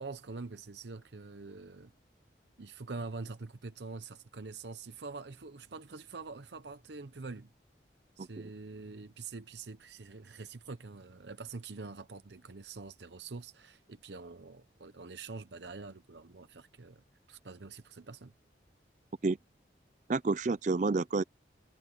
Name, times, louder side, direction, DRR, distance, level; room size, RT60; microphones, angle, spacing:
voice 1, 0.0-1.9 2.6-7.5 8.2-17.0 17.3-18.3, right 3 dB, 75° right, 0.8 m, -45 dB
voice 2, 20.1-21.2, right 3 dB, 40° right, 0.4 m, -29 dB
head